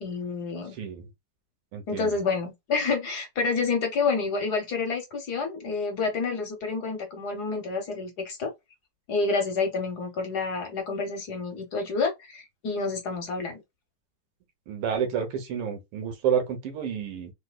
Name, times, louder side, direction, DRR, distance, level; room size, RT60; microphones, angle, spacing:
voice 1, 0.0-0.8 1.9-8.5 9.1-13.6, left 4 dB, 60° left, 1.2 m, -29 dB
voice 2, 0.7-1.1 1.7-2.2 14.7-17.3, right 7 dB, 85° right, 1.9 m, -29 dB
4.0 x 2.6 x 2.2 m
omnidirectional pair, 2.4 m